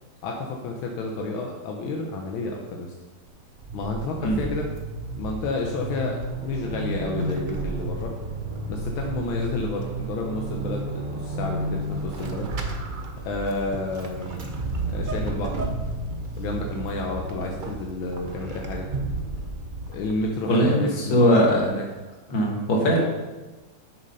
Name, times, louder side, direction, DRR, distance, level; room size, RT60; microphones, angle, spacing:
voice 1, 0.2-2.9 3.7-4.7 5.2-8.2 8.7-12.5 13.2-14.6 14.9-15.7 16.4-18.9 19.9-21.8, left 2 dB, 90° left, 1 dB, 1.7 m, -31 dB
Vehicle / Accelerating revving vroom / Squeak, 3.3-20.5, right 2 dB, 55° right, 0.5 m, -32 dB
voice 2, 20.5-21.6 22.3-23.0, equal, 70° left, -1 dB, 2.6 m, -20 dB
7.9 x 6.9 x 5.4 m, 1.2 s
omnidirectional pair, 2.2 m